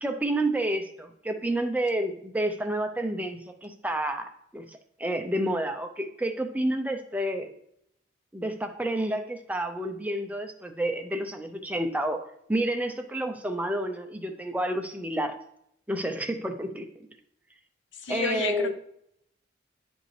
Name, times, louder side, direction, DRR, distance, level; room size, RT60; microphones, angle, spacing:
voice 1, 0.0-7.5 8.3-15.4 15.9-17.1 18.1-18.7, right 1 dB, 10° right, 5 dB, 0.5 m, -30 dB
voice 2, 17.9-18.7, left 4 dB, 65° left, 8 dB, 0.8 m, -31 dB
10.0 x 5.2 x 3.2 m, 0.72 s
head